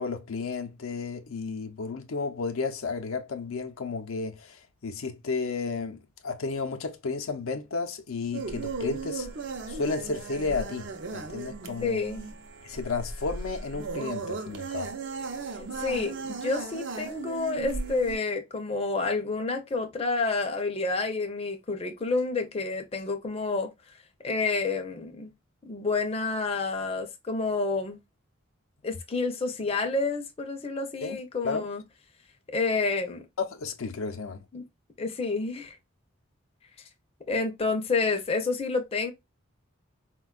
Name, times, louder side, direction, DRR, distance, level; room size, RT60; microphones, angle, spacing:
voice 1, 0.0-9.3 9.7-12.0 12.6-14.9 31.0-31.2 31.4-31.7 33.4-34.4, left 4 dB, 90° left, 0.6 m, -32 dB
sound 1, 8.3-18.2, right 4 dB, 60° right, 0.5 m, -36 dB
voice 2, 11.8-12.2 15.6-23.7 24.2-25.3 25.7-28.0 28.8-31.8 32.5-33.3 34.5-34.6 35.0-35.8 37.3-39.1, left 3 dB, 30° left, 0.5 m, -29 dB
4.1 x 2.2 x 2.2 m
head